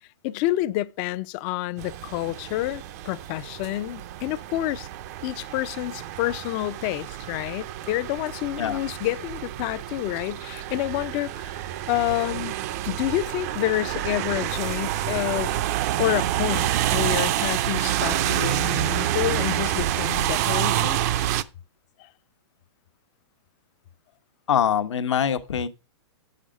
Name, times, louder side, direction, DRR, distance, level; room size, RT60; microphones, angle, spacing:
voice 1, 0.2-4.9 5.2-11.6 11.9-12.6 12.9-15.6 16.0-21.0 22.0-22.1, left 16 dB, 25° left, 0.3 m, -28 dB
sound 1, 1.8-21.4, right 12 dB, 35° right, 0.4 m, -28 dB
voice 2, 24.5-25.7, left 8 dB, 85° left, 1.0 m, -23 dB
7.9 x 6.5 x 4.9 m
hypercardioid pair, 155°, 15 cm